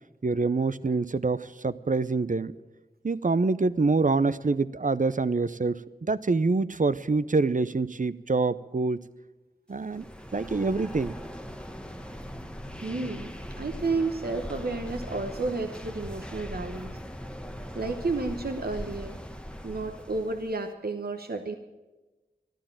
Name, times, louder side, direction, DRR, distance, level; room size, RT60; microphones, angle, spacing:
voice 1, 0.2-2.5 3.0-9.0 9.7-10.0 10.3-11.1, right 3 dB, 50° right, 16 dB, 0.6 m, -26 dB
sound 1, 9.8-20.6, equal, 5° left, 1.1 m, -40 dB
voice 2, 12.8-17.0 17.7-19.2 19.6-21.5, right 3 dB, 70° right, 5 dB, 1.0 m, -31 dB
13.0 x 12.0 x 8.8 m, 1.1 s
wide cardioid pair, 45°, 17 cm